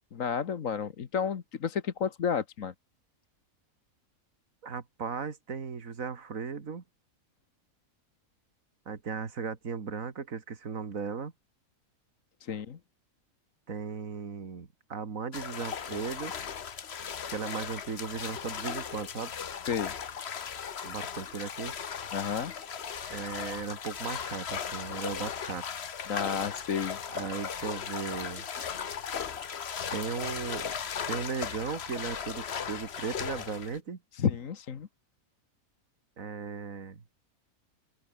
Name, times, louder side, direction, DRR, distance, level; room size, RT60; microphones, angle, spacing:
voice 1, 0.1-2.7 12.4-12.8 19.7-19.9 22.1-22.5 26.1-27.0 34.1-34.9, left 7 dB, 65° left, 1.7 m, -31 dB
voice 2, 4.6-6.8 8.9-11.3 13.7-16.3 17.3-19.3 20.8-21.7 23.1-25.6 27.1-28.4 29.9-30.8 31.1-34.0 36.2-37.0, right 5 dB, 70° right, 2.5 m, -36 dB
sound 1, 15.3-33.8, left 7 dB, 50° left, 1.2 m, -37 dB
open air
omnidirectional pair, 1.5 m